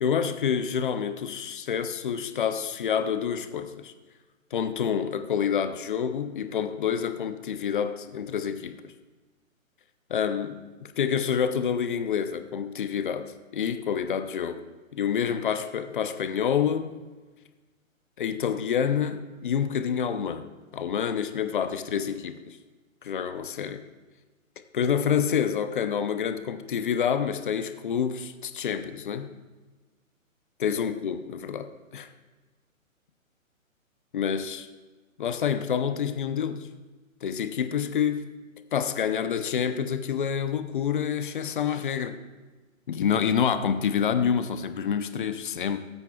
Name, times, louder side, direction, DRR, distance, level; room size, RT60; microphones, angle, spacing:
voice 1, 0.0-3.9 4.5-8.9 10.1-10.6 11.0-14.6 14.9-16.9 18.2-20.5 20.7-22.6 23.0-23.8 24.7-29.3 30.6-32.1 34.1-34.7 35.2-36.7 37.2-38.3 38.7-42.2 42.9-45.8, left 7 dB, 40° left, 10 dB, 0.6 m, -27 dB
19.5 x 8.0 x 2.3 m, 1.3 s
hypercardioid pair, 150°, 41 cm